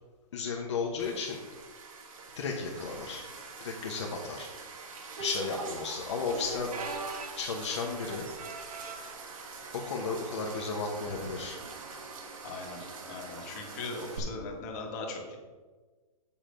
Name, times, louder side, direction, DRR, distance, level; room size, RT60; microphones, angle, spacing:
voice 1, 0.3-1.4 2.3-3.2 3.6-4.5 5.2-6.7 7.4-8.3 9.7-11.6, left 4 dB, 50° left, 0 dB, 1.0 m, -34 dB
sound 1, 1.0-14.2, right 3 dB, 60° right, 1.5 m, -43 dB
sound 2, 6.7-9.2 9.9-10.2 10.5-10.6 11.5-11.8 13.4-13.5, right 4 dB, 80° right, 1.2 m, -42 dB
voice 2, 12.4-15.4, left 3 dB, 25° left, 0 dB, 1.4 m, -39 dB
7.4 x 5.9 x 5.0 m, 1.3 s
hypercardioid pair, 175°, 19 cm